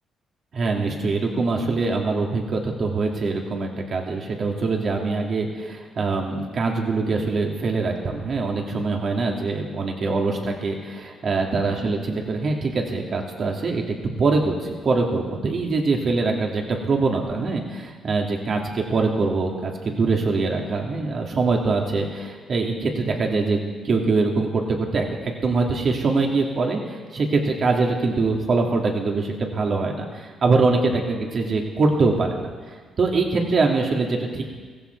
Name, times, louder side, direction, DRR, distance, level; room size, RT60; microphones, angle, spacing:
voice 1, 0.5-13.8 14.2-23.6 23.8-32.5 33.0-34.4, right 3 dB, 50° right, 1 dB, 2.5 m, -23 dB
15.5 x 15.5 x 4.7 m, 1.5 s
cardioid pair, 90°, 0 cm